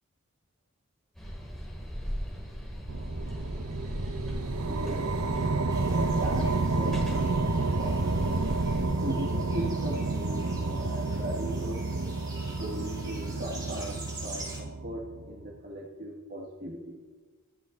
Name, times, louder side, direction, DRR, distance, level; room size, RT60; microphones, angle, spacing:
sound 1, 1.1-8.8, equal, ahead, 5.9 m, -38 dB
sound 2, 2.9-15.4, right 3 dB, 90° right, 1.0 m, -30 dB
voice 1, 4.7-5.1 5.9-7.3 7.6-8.4 8.9-11.8 12.5-17.1, right 1 dB, 45° right, -1 dB, 1.6 m, -38 dB
sound 3, 5.7-14.6, right 1 dB, 20° right, 4.9 m, -46 dB
25.5 x 9.7 x 3.9 m, 1.3 s
head